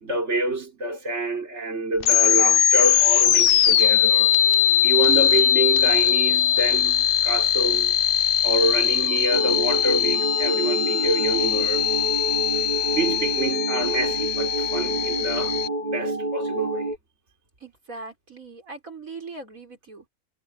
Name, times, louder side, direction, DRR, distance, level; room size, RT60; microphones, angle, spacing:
voice 1, 0.0-4.4 4.8-7.9 8.4-11.9 12.9-15.6 15.8-16.9, right 2 dB, 55° right, 4.4 m, -27 dB
sound 1, 2.0-15.7, left 10 dB, 55° left, 0.7 m, -21 dB
sound 2, 9.3-17.0, right 1 dB, 30° right, 4.2 m, -28 dB
voice 2, 17.6-20.1, right 3 dB, 75° right, 6.1 m, -40 dB
omnidirectional pair, 1.5 m